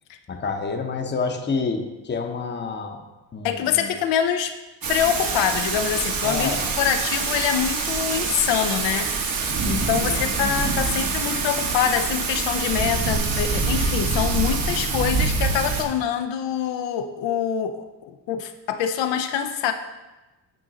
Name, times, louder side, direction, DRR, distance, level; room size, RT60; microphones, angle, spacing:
voice 1, 0.3-3.0 3.3-3.9 6.2-6.6 10.1-10.3, left 4 dB, 25° left, 5 dB, 0.8 m, -28 dB
voice 2, 3.4-4.6 4.9-9.2 9.6-19.7, left 9 dB, 85° left, 7 dB, 0.6 m, -25 dB
Thunder / Rain, 4.8-15.8, right 4 dB, 55° right, 1.2 m, -25 dB
9.3 x 3.8 x 3.9 m, 1.1 s
cardioid pair, 105°, 43 cm